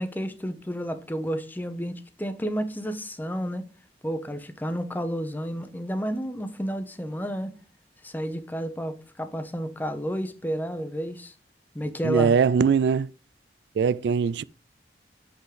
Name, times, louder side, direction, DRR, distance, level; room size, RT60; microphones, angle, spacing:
voice 1, 0.0-3.6 4.0-7.5 8.0-11.3 11.7-12.3, equal, 10° left, 0.9 m, -31 dB
voice 2, 12.0-13.1 13.8-14.4, right 6 dB, 75° right, 0.3 m, -21 dB
7.6 x 5.8 x 5.0 m
head